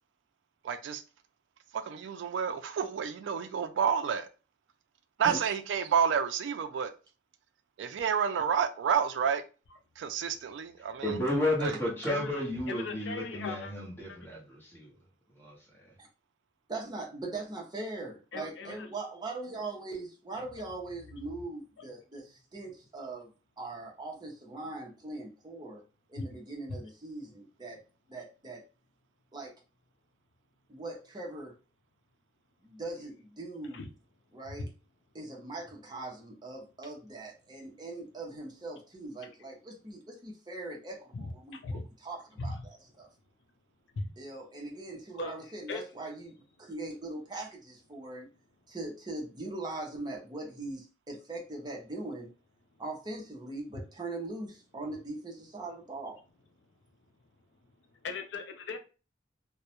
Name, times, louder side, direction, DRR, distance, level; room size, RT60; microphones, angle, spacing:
voice 1, 0.6-1.0 1.7-4.3 5.2-6.9 7.8-9.4 10.0-11.1 11.6-11.7, right 7 dB, 75° right, 0.3 m, -29 dB
voice 2, 10.8-14.9 15.4-15.6, left 1 dB, 10° left, 0.9 m, -32 dB
voice 3, 12.1-13.7 14.1-14.2 18.3-18.9 26.2-26.3 26.7-26.8 33.7-33.9 34.4-34.7 41.1-41.9 42.4-42.7 44.0-44.1 45.1-45.3 45.7-45.8 57.9-58.8, left 3 dB, 70° left, 0.4 m, -38 dB
voice 4, 16.7-23.3 23.6-25.8 26.1-27.8 28.1-28.6 29.3-29.5 30.7-31.5 32.6-33.8 34.3-34.7 35.1-43.1 44.2-48.3 48.7-52.3 52.8-56.2, right 2 dB, 25° right, 0.6 m, -41 dB
2.2 x 2.0 x 2.8 m
head